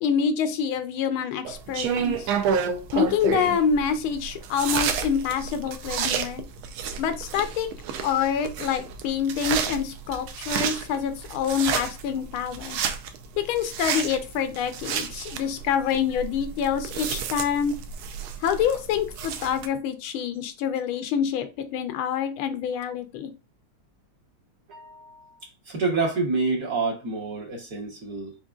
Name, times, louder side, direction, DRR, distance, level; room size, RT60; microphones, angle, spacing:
voice 1, 0.0-2.3 2.9-6.4 7.0-7.7 8.0-12.8 13.4-17.7 18.4-23.3, left 7 dB, 90° left, 1.5 m, -26 dB
sound 1, 1.5-19.7, right 7 dB, 80° right, 1.4 m, -31 dB
voice 2, 24.7-28.4, right 3 dB, 50° right, 1.4 m, -28 dB
5.0 x 3.9 x 2.4 m
omnidirectional pair, 2.3 m